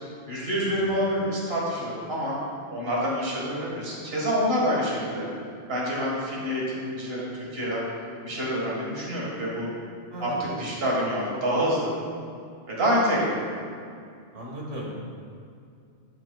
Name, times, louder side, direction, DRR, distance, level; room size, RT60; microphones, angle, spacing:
voice 1, 0.3-2.4 2.7-5.3 5.7-7.8 8.2-9.7 10.2-11.9 12.7-13.4, equal, 55° right, -5 dB, 1.8 m, -27 dB
voice 2, 14.3-14.9, right 1 dB, 75° right, -3 dB, 1.7 m, -36 dB
11.5 x 5.8 x 2.3 m, 2.3 s
omnidirectional pair, 1.3 m